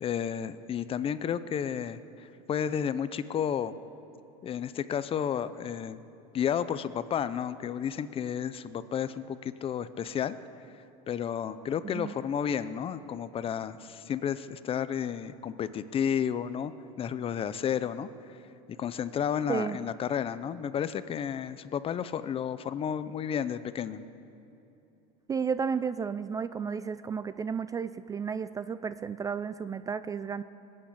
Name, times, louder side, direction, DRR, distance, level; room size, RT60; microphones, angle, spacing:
voice 1, 0.0-3.8 4.4-6.0 6.3-10.3 11.1-18.1 18.8-24.0, left 8 dB, 30° left, 14 dB, 0.6 m, -32 dB
voice 2, 25.3-30.4, right 6 dB, 20° right, 13 dB, 0.3 m, -32 dB
20.0 x 8.7 x 8.3 m, 2.9 s
supercardioid pair, 115°, 18 cm